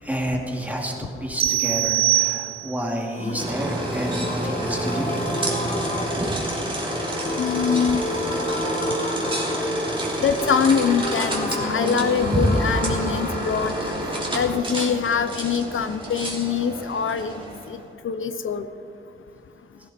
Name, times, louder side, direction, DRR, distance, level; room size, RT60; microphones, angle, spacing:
voice 1, 0.0-0.9 1.2-5.3, equal, 5° right, -1 dB, 2.5 m, -29 dB
sound 1, 1.4-2.9, right 15 dB, 80° right, 0.4 m, -22 dB
sound 2, 3.1-16.8 17.0-17.1 17.4-17.5, left 1 dB, 35° left, 1.5 m, -30 dB
sound 3, 3.4-17.8, right 1 dB, 25° right, 3.0 m, -28 dB
voice 2, 7.4-8.0 10.2-13.7 14.3-17.3 17.7-17.8 18.0-18.7, left 6 dB, 75° left, 10 dB, 0.7 m, -23 dB
18.0 x 16.0 x 4.3 m, 2.4 s
wide cardioid pair, 135°, 21 cm